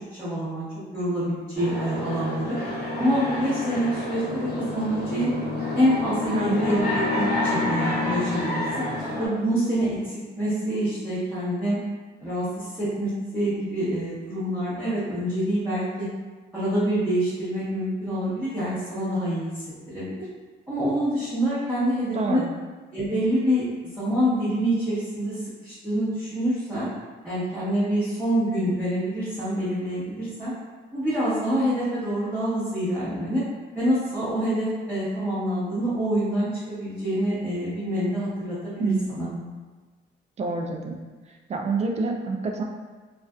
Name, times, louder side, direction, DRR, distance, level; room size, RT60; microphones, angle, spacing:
voice 1, 0.2-0.6 0.9-2.6 3.0-5.3 5.7-8.6 9.2-11.8 12.2-16.1 16.5-19.5 19.9-20.1 20.7-22.4 22.9-26.9 27.2-30.5 30.9-33.4 33.7-39.3, equal, 5° right, -14 dB, 1.0 m, -26 dB
sound 1, 1.5-9.3, left 2 dB, 50° left, 1.2 m, -28 dB
voice 2, 6.3-6.6 22.1-22.5 38.8-39.5 40.4-41.0 41.5-42.6, right 3 dB, 35° right, 2 dB, 0.4 m, -27 dB
2.4 x 2.4 x 2.2 m, 1.3 s
cardioid pair, 90°, 20 cm